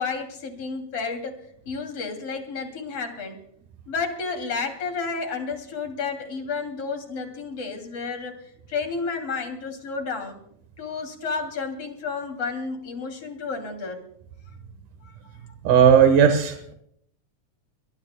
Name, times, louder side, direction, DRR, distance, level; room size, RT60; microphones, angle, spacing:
voice 1, 0.0-1.3 1.7-3.4 3.9-10.4 10.8-14.0, left 4 dB, 50° left, 5 dB, 3.6 m, -31 dB
voice 2, 15.6-16.7, right 7 dB, 85° right, 6 dB, 2.9 m, -16 dB
24.0 x 21.5 x 2.2 m, 0.69 s
omnidirectional pair, 3.4 m